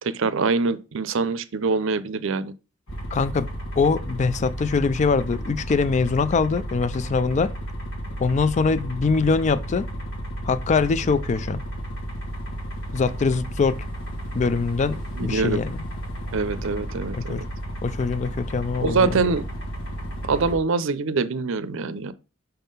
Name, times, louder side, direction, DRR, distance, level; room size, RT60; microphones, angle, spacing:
voice 1, 0.0-2.5 15.1-15.6 16.3-17.5 18.8-19.4 20.2-22.1, right 4 dB, 65° right, 0.5 m, -24 dB
sound 1, 2.9-20.6, equal, 85° left, 1.9 m, -33 dB
voice 2, 3.1-3.5 3.8-7.5 8.2-9.9 10.4-11.6 12.9-13.8 14.3-15.7 17.1-17.4 17.8-19.2, left 4 dB, 35° left, 0.4 m, -23 dB
5.7 x 3.7 x 5.5 m
head